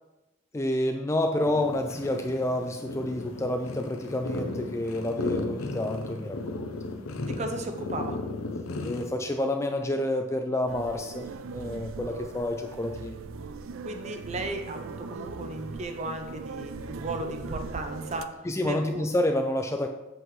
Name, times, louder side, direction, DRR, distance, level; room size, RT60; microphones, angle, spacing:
voice 1, 0.5-6.7 8.8-13.2 18.5-19.9, left 1 dB, 15° left, 4 dB, 0.3 m, -29 dB
sound 1, 1.4-9.1, left 2 dB, 90° left, 0.8 m, -35 dB
voice 2, 7.3-8.2 13.8-18.3 18.6-19.1, right 2 dB, 35° right, 5 dB, 0.7 m, -35 dB
sound 2, 10.7-18.2, right 4 dB, 75° right, 0.4 m, -39 dB
7.8 x 7.6 x 3.2 m, 1.0 s
head